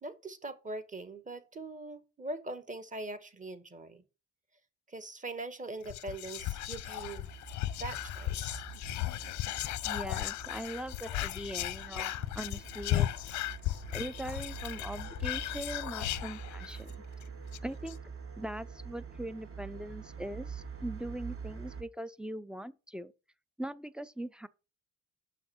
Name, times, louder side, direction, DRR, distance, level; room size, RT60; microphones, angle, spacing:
voice 1, 0.0-4.0 4.9-7.3 7.8-8.6, right 2 dB, 25° right, 1.1 m, -42 dB
Whispering, 5.8-16.9 17.2-17.3 17.5-17.9, left 14 dB, 70° left, 0.4 m, -36 dB
sound 1, 6.4-21.8, right 6 dB, 45° right, 1.4 m, -46 dB
voice 2, 9.8-13.2 13.9-16.9 17.6-18.0 18.4-23.1 23.6-24.5, right 1 dB, 5° right, 0.4 m, -41 dB
6.1 x 5.8 x 4.2 m
cardioid pair, 90°, 30 cm